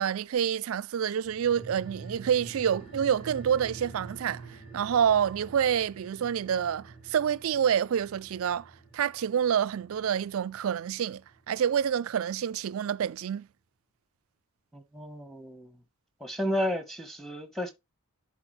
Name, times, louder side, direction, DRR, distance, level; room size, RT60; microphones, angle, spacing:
voice 1, 0.0-4.4 4.7-11.2 11.5-13.5, right 8 dB, 75° right, 0.4 m, -27 dB
sound 1, 1.3-12.1 12.4-12.5, right 3 dB, 25° left, 3.9 m, -47 dB
voice 2, 14.7-15.8 16.2-17.7, equal, ahead, 1.3 m, -32 dB
10.5 x 4.1 x 3.2 m
head